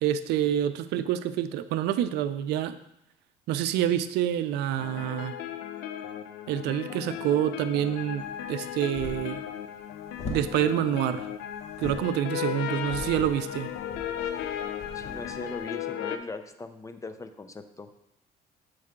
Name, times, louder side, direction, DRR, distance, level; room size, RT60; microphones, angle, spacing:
voice 1, 0.0-2.7 3.5-5.3 6.5-9.4 10.3-11.3 11.8-13.7, right 11 dB, 85° right, 12 dB, 0.4 m, -27 dB
sound 1, 4.8-16.2, left 10 dB, 85° left, 0.5 m, -36 dB
sound 2, 8.2-15.8, left 2 dB, 40° left, 1.2 m, -43 dB
voice 2, 14.9-18.0, left 3 dB, 20° left, 9 dB, 0.5 m, -39 dB
7.6 x 4.7 x 3.6 m, 0.80 s
cardioid pair, 110°, 17 cm